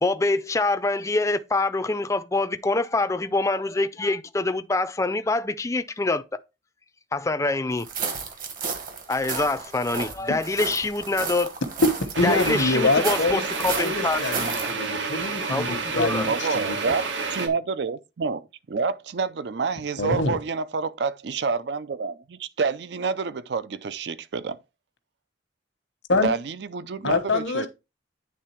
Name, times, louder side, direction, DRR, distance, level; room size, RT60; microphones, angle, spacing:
voice 1, 0.0-6.2 7.1-7.9 9.1-11.5 12.2-14.8 15.5-16.3, left 2 dB, 15° left, 0.4 m, -25 dB
sound 1, 7.8-14.7, right 5 dB, 45° right, 1.3 m, -33 dB
voice 2, 12.0-13.4 13.8-16.8 20.0-20.4 26.1-26.3 27.0-27.7, left 3 dB, 85° left, 1.1 m, -25 dB
sound 2, 12.1-17.5, right 4 dB, 80° right, 1.2 m, -30 dB
voice 3, 16.3-24.6 26.2-27.7, right 4 dB, 65° right, 0.5 m, -28 dB
9.3 x 3.6 x 4.5 m
head